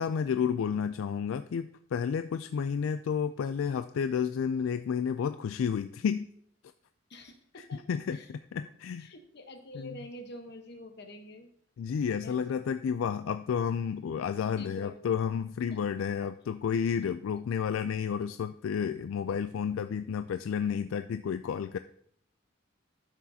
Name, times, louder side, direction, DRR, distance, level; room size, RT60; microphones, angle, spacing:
voice 1, 0.0-6.3 7.9-8.2 8.5-9.1 9.8-9.9 11.8-21.8, left 7 dB, 80° left, 11 dB, 0.3 m, -31 dB
voice 2, 7.1-8.3 9.0-11.5 12.2-12.4 14.6-15.1 15.7-15.8 16.9-17.1, left 1 dB, 55° left, 5 dB, 1.1 m, -47 dB
12.0 x 6.2 x 2.8 m, 0.64 s
head